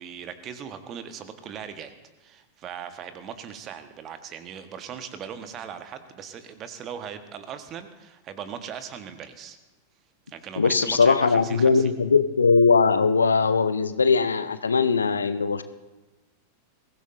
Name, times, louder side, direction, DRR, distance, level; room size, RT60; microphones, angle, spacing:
voice 1, 0.0-1.9 2.2-9.6 10.3-11.9, right 8 dB, 30° right, 9 dB, 1.3 m, -39 dB
voice 2, 10.6-15.6, left 5 dB, 75° left, 13 dB, 0.7 m, -20 dB
22.0 x 15.5 x 2.7 m, 1.2 s
figure-of-eight pair, 90°, 0 cm